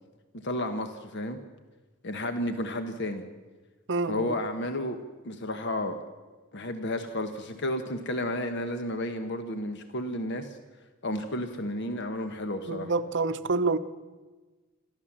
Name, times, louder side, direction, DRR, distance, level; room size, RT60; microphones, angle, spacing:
voice 1, 0.3-1.4 2.0-3.2 4.1-6.0 6.5-10.6 11.0-12.9, left 1 dB, 60° left, 8 dB, 1.3 m, -32 dB
voice 2, 3.9-4.3 12.7-13.8, right 3 dB, 65° right, 11 dB, 0.9 m, -27 dB
26.0 x 14.0 x 7.4 m, 1.3 s
head